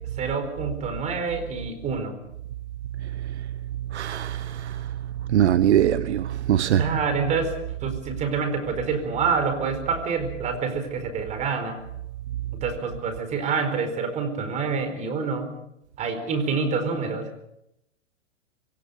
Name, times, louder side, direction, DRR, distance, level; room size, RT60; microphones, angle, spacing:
voice 1, 0.2-2.2 6.7-7.5 7.8-11.8 12.5-15.5 16.0-17.3, right 5 dB, 20° right, 4.4 m, -27 dB
voice 2, 3.9-4.3 5.3-6.2 6.5-6.8, right 10 dB, 65° right, 1.3 m, -20 dB
26.0 x 23.0 x 5.4 m
hypercardioid pair, 155°, 36 cm